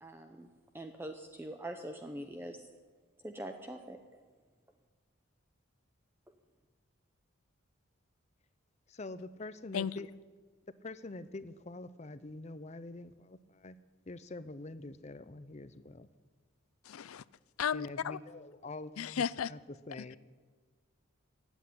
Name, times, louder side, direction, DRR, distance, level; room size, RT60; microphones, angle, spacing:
voice 1, 0.0-0.5 0.7-2.6 3.2-4.0, right 1 dB, 10° right, 5 dB, 0.6 m, -43 dB
voice 2, 8.9-10.1 10.8-13.8 14.1-16.1 17.7-20.2, left 2 dB, 30° left, 14 dB, 0.6 m, -45 dB
voice 3, 16.8-17.2 17.6-18.2 19.0-19.5, left 7 dB, 85° left, 20 dB, 0.5 m, -34 dB
16.0 x 8.2 x 9.9 m, 1.4 s
head